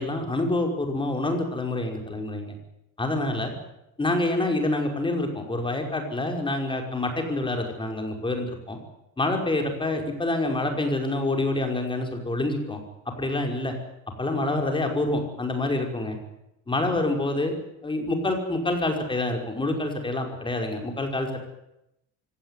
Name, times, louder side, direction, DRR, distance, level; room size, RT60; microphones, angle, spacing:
voice 1, 0.0-2.6 3.0-3.5 4.0-8.8 9.2-12.8 13.2-13.7 14.2-16.2 16.7-17.5 17.8-21.4, left 2 dB, 15° left, 3 dB, 5.4 m, -27 dB
24.0 x 18.0 x 9.9 m, 0.86 s
cardioid pair, 140°, 34 cm